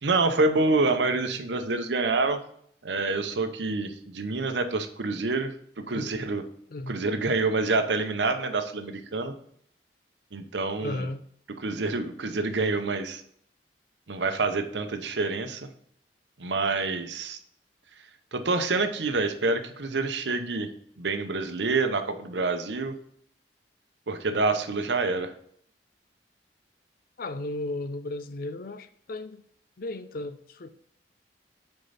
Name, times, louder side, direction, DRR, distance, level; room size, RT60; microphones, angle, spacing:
voice 1, 0.0-2.4 2.8-6.4 6.9-9.3 10.3-11.1 11.6-13.2 14.1-15.7 16.4-17.4 18.3-20.7 21.0-22.9 24.1-25.3, right 3 dB, 85° right, 0.8 m, -27 dB
voice 2, 10.8-11.2 27.2-29.4 29.8-30.7, left 2 dB, 55° left, 0.5 m, -35 dB
6.5 x 4.6 x 4.1 m
head